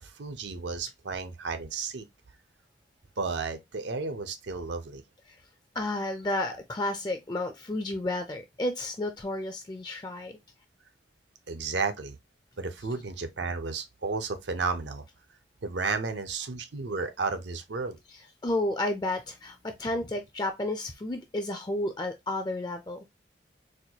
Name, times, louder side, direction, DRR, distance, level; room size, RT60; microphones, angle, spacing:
voice 1, 0.0-2.1 3.2-5.0 11.5-12.2 12.6-15.0 15.6-18.0, right 4 dB, 75° right, 0.6 m, -33 dB
voice 2, 5.7-10.4 18.4-23.1, left 1 dB, 25° left, 0.4 m, -31 dB
4.3 x 2.2 x 2.8 m
head